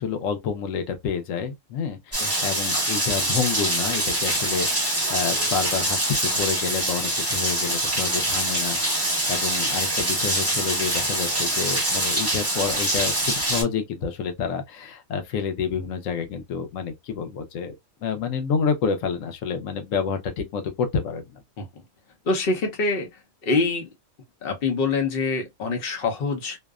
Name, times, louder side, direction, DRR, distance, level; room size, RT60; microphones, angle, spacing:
voice 1, 0.0-21.4, left 6 dB, 90° left, 1.0 m, -29 dB
Rain, 2.1-13.6, right 1 dB, 15° right, 0.9 m, -24 dB
voice 2, 22.3-23.1 23.4-23.9 24.4-26.6, left 3 dB, 50° left, 0.9 m, -25 dB
2.7 x 2.1 x 2.2 m
omnidirectional pair, 1.3 m